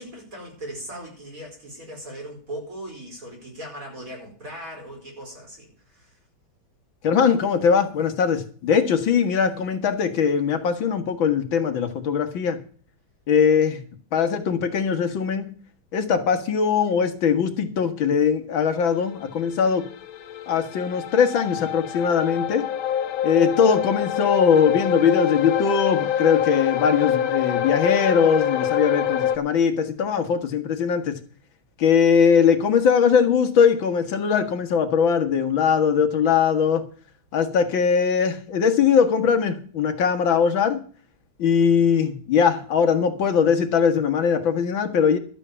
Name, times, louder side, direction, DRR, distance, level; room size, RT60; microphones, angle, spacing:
voice 1, 0.0-6.2, right 1 dB, 40° right, 0 dB, 5.3 m, -38 dB
voice 2, 7.0-12.6 13.3-13.8 14.1-15.5 15.9-19.8 20.5-22.7 23.2-31.2 31.8-36.8 37.3-40.8 41.4-45.2, left 6 dB, 70° left, 7 dB, 2.3 m, -20 dB
sound 1, 19.0-29.4, left 9 dB, 85° left, 2.0 m, -26 dB
12.5 x 8.2 x 6.9 m, 0.43 s
omnidirectional pair, 2.2 m